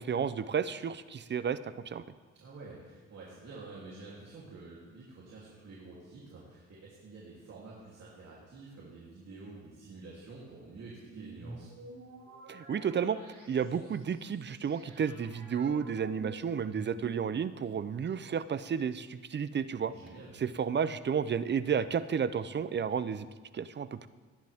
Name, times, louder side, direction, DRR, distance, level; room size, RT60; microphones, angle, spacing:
voice 1, 0.0-2.0 12.5-13.2 13.5-19.9 20.4-23.3 23.5-24.1, right 7 dB, 35° right, 14 dB, 0.6 m, -32 dB
voice 2, 2.3-11.7 19.8-20.4, right 3 dB, 55° right, -6 dB, 3.2 m, -49 dB
sound 1, 11.1-17.4, right 2 dB, 85° right, 4.2 m, -50 dB
18.5 x 10.5 x 3.6 m, 1.4 s
cardioid pair, 90°, 30 cm